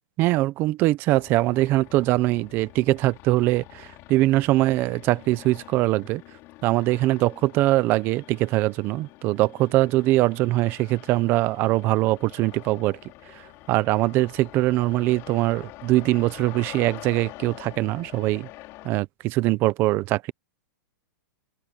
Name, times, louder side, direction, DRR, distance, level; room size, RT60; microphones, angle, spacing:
voice 1, 0.2-6.2 6.6-13.0 13.3-18.5 18.8-20.3, right 17 dB, 20° right, 0.6 m, -22 dB
sound 1, 1.1-18.9, left 19 dB, 25° left, 4.5 m, -46 dB
open air
supercardioid pair, 175°, 10 cm